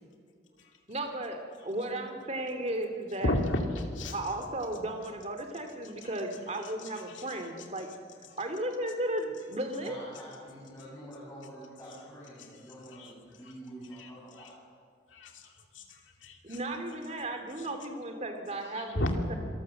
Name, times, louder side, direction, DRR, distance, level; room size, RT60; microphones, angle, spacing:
voice 1, 0.9-3.3 4.1-7.9 8.4-10.0 16.4-19.0 19.3-19.4, right 1 dB, 35° right, 6 dB, 2.4 m, -35 dB
voice 2, 3.2-4.3 6.0-6.2 6.6-7.9 8.2-8.4 12.4-13.1 13.4-13.5 13.9-14.5 15.1-16.6 17.1-17.3 17.6-17.8 18.7-19.1, left 1 dB, 90° left, 3 dB, 2.5 m, -36 dB
voice 3, 9.8-14.5, equal, 15° left, -8 dB, 7.9 m, -47 dB
26.5 x 19.0 x 7.7 m, 2.1 s
head